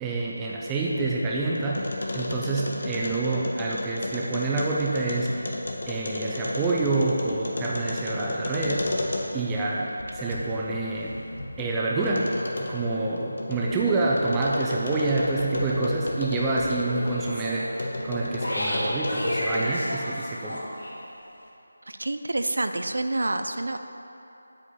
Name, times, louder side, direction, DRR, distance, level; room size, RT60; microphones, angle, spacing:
voice 1, 0.0-5.5 5.9-8.9 9.3-11.2 11.6-17.7 18.0-20.6, right 3 dB, 5° right, -4 dB, 0.4 m, -27 dB
sound 1, 0.6-9.5 10.0-17.3 17.8-19.9, left 2 dB, 50° left, 1.2 m, -33 dB
sound 2, 16.4-20.9, equal, 90° left, 2.0 m, -32 dB
voice 2, 21.9-23.8, right 2 dB, 75° right, 7 dB, 0.6 m, -28 dB
7.9 x 5.4 x 7.4 m, 3.0 s
figure-of-eight pair, 180°, 0 cm